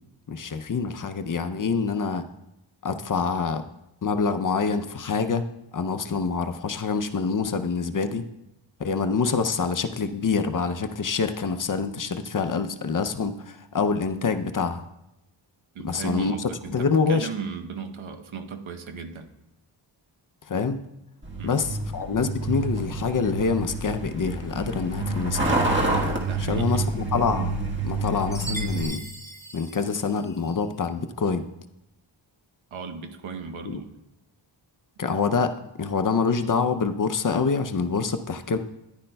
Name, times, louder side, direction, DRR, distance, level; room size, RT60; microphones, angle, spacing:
voice 1, 0.3-2.3 2.8-3.6 4.0-5.5 5.7-8.2 8.8-14.8 15.8-17.3 20.5-20.8 21.4-25.5 26.4-27.6 27.8-29.0 29.5-31.5 33.6-33.8 35.0-38.6, left 5 dB, 45° left, 8 dB, 0.6 m, -26 dB
voice 2, 15.7-19.3 21.4-21.6 26.1-26.9 32.7-34.0, right 5 dB, 80° right, 7 dB, 1.0 m, -36 dB
Truck, 21.2-28.8, right 2 dB, 25° right, 1.4 m, -28 dB
Chime, 28.3-30.6, right 2 dB, 5° left, 0.7 m, -39 dB
14.0 x 10.5 x 2.2 m, 0.90 s
wide cardioid pair, 130°, 47 cm